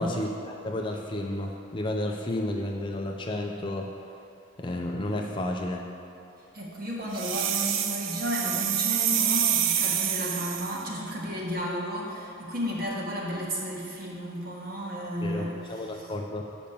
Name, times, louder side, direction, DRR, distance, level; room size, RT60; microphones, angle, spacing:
voice 1, 0.0-3.9 4.6-5.9 15.2-16.4, left 1 dB, 25° left, 1 dB, 0.4 m, -32 dB
voice 2, 6.5-16.1, equal, 45° right, -3 dB, 1.4 m, -33 dB
sound 1, 7.1-10.8, right 9 dB, 70° right, 0.5 m, -27 dB
7.0 x 5.1 x 7.0 m, 2.8 s
head